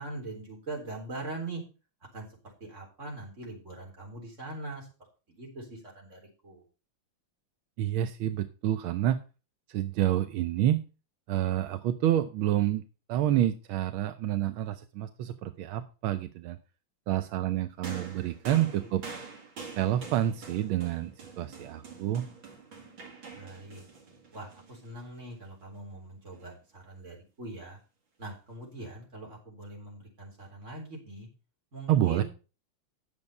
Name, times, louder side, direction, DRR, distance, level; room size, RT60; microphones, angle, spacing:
voice 1, 0.0-1.6 2.1-2.3 2.6-4.9 5.3-6.6 18.4-18.9 23.3-23.9 24.3-27.8 28.2-31.3 31.7-32.2, right 2 dB, 35° right, -1 dB, 4.0 m, -42 dB
voice 2, 7.8-9.2 9.7-10.8 11.3-12.8 13.1-16.6 17.1-19.0 19.8-22.2 31.9-32.2, right 12 dB, 85° right, 10 dB, 1.6 m, -28 dB
sound 1, 17.8-25.3 26.3-26.5, right 5 dB, 70° right, 2.6 m, -45 dB
9.6 x 7.1 x 5.3 m, 0.33 s
omnidirectional pair, 2.3 m